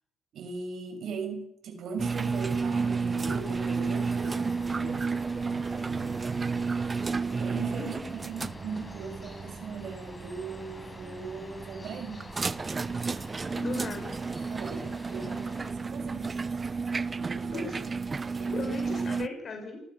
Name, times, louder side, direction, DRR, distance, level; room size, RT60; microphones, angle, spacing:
voice 1, 0.3-6.6 7.0-12.2 14.5-16.3 17.1-17.9 18.4-18.8, right 5 dB, 70° right, 7 dB, 6.6 m, -40 dB
sound 1, 2.0-19.3, right 4 dB, 30° right, 1.0 m, -32 dB
sound 2, 2.2-15.7, left 2 dB, 20° left, 6.6 m, -49 dB
voice 2, 7.8-8.1 13.6-14.2 17.5-17.8 18.5-19.8, left 3 dB, 50° left, 4 dB, 6.4 m, -36 dB
29.0 x 20.0 x 6.9 m, 0.75 s
cardioid pair, 90°, 0 cm